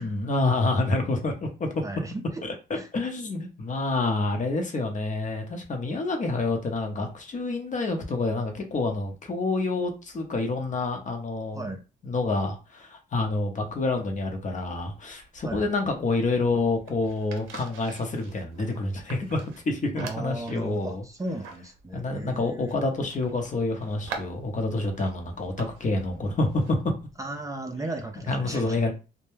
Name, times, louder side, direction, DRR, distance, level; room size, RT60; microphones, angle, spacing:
voice 1, 0.0-1.7 2.4-11.7 12.0-19.4 19.7-21.0 21.9-26.8 28.3-28.9, left 2 dB, 40° left, 0.7 m, -28 dB
voice 2, 1.8-2.4 2.7-2.9 11.5-11.8 15.4-15.7 20.0-22.8 27.2-28.9, right 2 dB, 15° right, 0.4 m, -36 dB
sound 1, 13.5-27.3, right 5 dB, 85° right, 0.6 m, -46 dB
2.1 x 2.1 x 3.1 m
cardioid pair, 90°, 20 cm